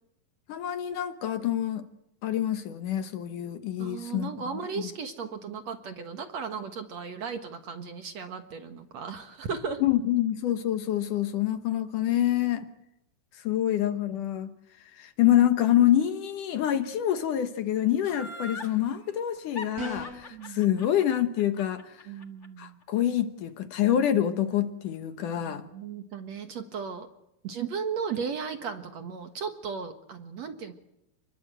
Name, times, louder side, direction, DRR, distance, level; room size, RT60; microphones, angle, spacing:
voice 1, 0.5-1.8 2.2-4.3 4.8-4.9 9.8-12.7 13.4-14.5 14.9-22.0 22.6-25.6, left 11 dB, 65° left, 2.5 m, -26 dB
voice 2, 3.8-9.8 20.3-20.7 22.1-22.8 25.4-27.1 27.4-30.7, right 6 dB, 55° right, 2.3 m, -36 dB
Laughter, 18.0-18.8 19.6-22.7 23.0-23.1, left 2 dB, 45° left, 0.8 m, -40 dB
sound 1, 19.8-20.3, right 1 dB, 90° right, 8.0 m, -36 dB
29.5 x 21.5 x 7.9 m
omnidirectional pair, 4.3 m